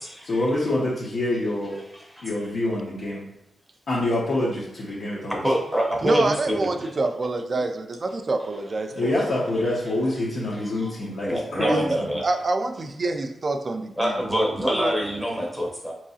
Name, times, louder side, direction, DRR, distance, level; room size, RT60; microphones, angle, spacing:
voice 1, 0.2-1.8 2.2-3.2 3.9-5.4 8.9-12.1, left 1 dB, 65° left, -7 dB, 0.8 m, -26 dB
voice 2, 5.4-6.7 10.8-10.9 11.2-12.2 14.0-15.9, equal, 5° right, -2 dB, 0.7 m, -25 dB
voice 3, 6.0-9.1 11.6-14.9 15.4-15.5, right 2 dB, 40° right, 6 dB, 0.4 m, -27 dB
4.6 x 3.0 x 2.7 m, 0.83 s
wide cardioid pair, 105°, 0 cm